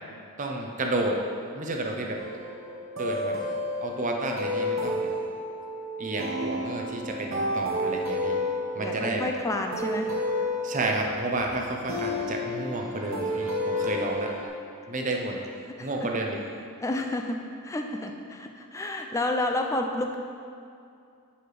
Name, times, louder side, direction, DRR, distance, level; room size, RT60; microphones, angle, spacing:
voice 1, 0.4-1.2 1.5-2.2 3.0-3.4 3.8-5.1 6.0-8.4 8.7-9.3 10.6-14.3 14.9-15.4 15.8-16.4, right 2 dB, 35° right, 1 dB, 0.6 m, -31 dB
sound 1, 2.2-14.5, left 1 dB, 60° right, 1.0 m, -31 dB
voice 2, 8.8-10.1 15.8-15.9 16.8-20.1, left 1 dB, 15° left, 3 dB, 0.4 m, -30 dB
11.0 x 4.3 x 3.3 m, 2.4 s
head